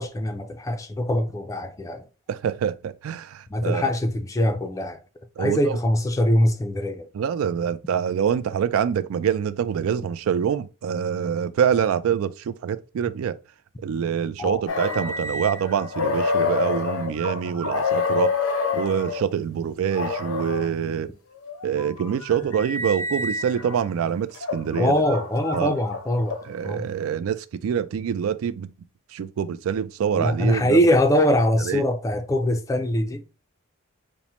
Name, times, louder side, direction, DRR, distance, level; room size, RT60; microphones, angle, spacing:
voice 1, 0.0-2.1 3.5-5.0 5.4-7.1 14.4-14.6 24.7-26.4 26.6-26.9 30.1-33.4, left 1 dB, 15° left, 0.3 m, -23 dB
voice 2, 2.3-3.8 5.4-5.8 7.1-13.4 13.8-18.3 18.7-21.1 21.6-24.9 25.5-25.8 26.4-28.7 29.1-30.8 31.7-31.8, right 8 dB, 80° right, 0.3 m, -25 dB
sound 1, 14.7-19.2 19.9-20.7 21.4-23.8 24.3-26.7, left 4 dB, 85° left, 0.7 m, -28 dB
5.3 x 2.1 x 2.9 m
head